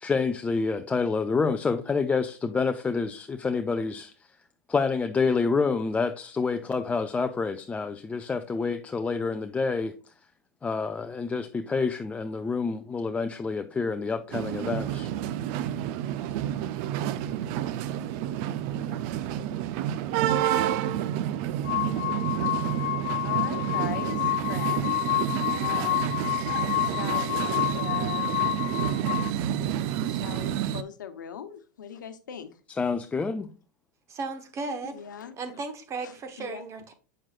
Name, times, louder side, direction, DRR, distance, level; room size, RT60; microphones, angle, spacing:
voice 1, 0.0-4.1 4.7-9.9 10.6-15.1 32.8-33.5, left 4 dB, 15° left, 0.4 m, -28 dB
sound 1, 14.3-30.8, right 11 dB, 50° right, 0.5 m, -29 dB
sound 2, 21.6-29.3, left 17 dB, 65° left, 0.7 m, -29 dB
voice 2, 23.2-25.2 25.5-26.2 26.8-28.3 30.1-32.5 34.9-35.3 36.0-36.6, left 8 dB, 90° left, 1.0 m, -40 dB
voice 3, 34.1-35.0 35.4-36.9, right 3 dB, 30° right, 1.2 m, -35 dB
7.6 x 6.1 x 2.4 m
hypercardioid pair, 115°, 10 cm